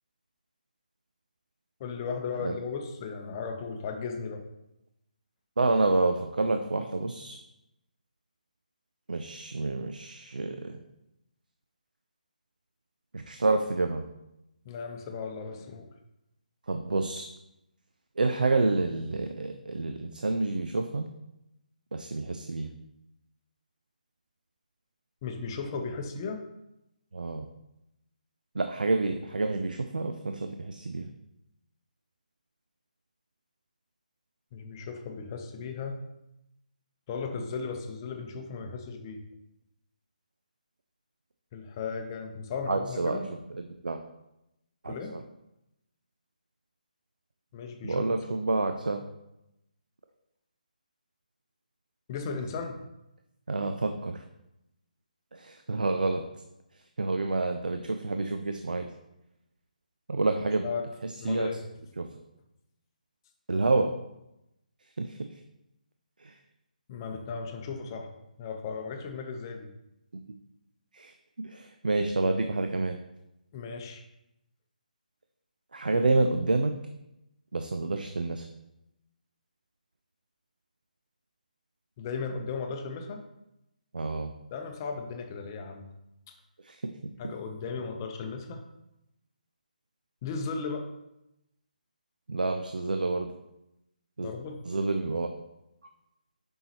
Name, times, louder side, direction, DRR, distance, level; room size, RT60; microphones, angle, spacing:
voice 1, 1.8-4.4 14.6-15.9 25.2-26.4 34.5-36.0 37.1-39.2 41.5-43.3 44.9-45.1 47.5-48.0 52.1-52.8 60.6-60.9 61.2-61.6 66.9-68.1 68.4-69.7 73.5-74.0 82.0-83.2 84.5-85.9 86.3-86.4 87.2-88.6 90.2-90.9 94.2-94.6, left 5 dB, 25° left, 5 dB, 0.8 m, -36 dB
voice 2, 5.6-7.4 9.1-10.8 13.1-14.0 16.7-17.3 18.2-21.1 21.9-22.7 27.1-27.5 28.5-31.1 42.7-43.2 43.8-44.0 44.8-45.2 47.8-49.0 53.5-54.2 55.3-56.2 57.0-58.9 60.1-60.7 61.0-61.5 62.0-62.1 63.5-63.9 65.0-65.3 66.2-66.3 70.9-71.1 71.4-73.0 75.7-76.7 77.5-78.5 83.9-84.3 86.6-86.9 92.3-93.3 94.2-94.3 94.7-95.3, right 3 dB, 70° right, 6 dB, 0.5 m, -28 dB
7.3 x 5.5 x 2.9 m, 0.88 s
figure-of-eight pair, 145°, 5 cm